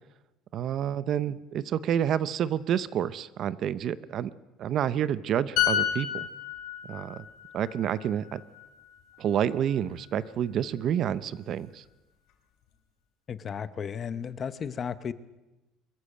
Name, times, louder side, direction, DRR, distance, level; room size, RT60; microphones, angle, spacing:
voice 1, 0.5-4.3 4.6-6.3 6.9-7.2 7.5-8.4 9.2-11.8, right 9 dB, 40° right, 16 dB, 0.7 m, -29 dB
sound 1, 5.6-9.2 9.5-9.7, left 11 dB, 65° left, 3.6 m, -31 dB
voice 2, 13.3-15.1, left 7 dB, 25° left, 14 dB, 0.7 m, -34 dB
23.0 x 15.0 x 8.9 m, 1.0 s
cardioid pair, 170°, 0 cm